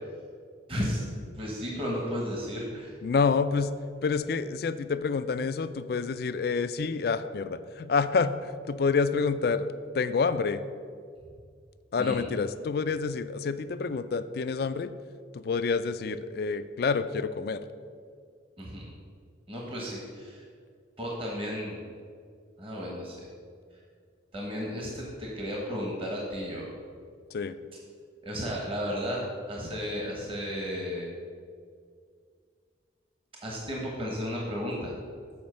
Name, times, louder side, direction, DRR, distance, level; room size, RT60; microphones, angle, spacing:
voice 1, 0.7-1.0 1.3-2.9 12.0-12.2 18.6-18.9 19.5-20.4 21.0-21.8 22.6-23.3 24.3-26.6 28.2-29.2 29.5-31.1 33.4-34.9, equal, 30° right, -3 dB, 1.1 m, -33 dB
voice 2, 3.0-3.7 4.0-10.6 11.9-14.9 15.3-17.7 27.3-27.6, left 5 dB, 55° left, 12 dB, 0.3 m, -28 dB
7.2 x 5.0 x 6.4 m, 2.1 s
head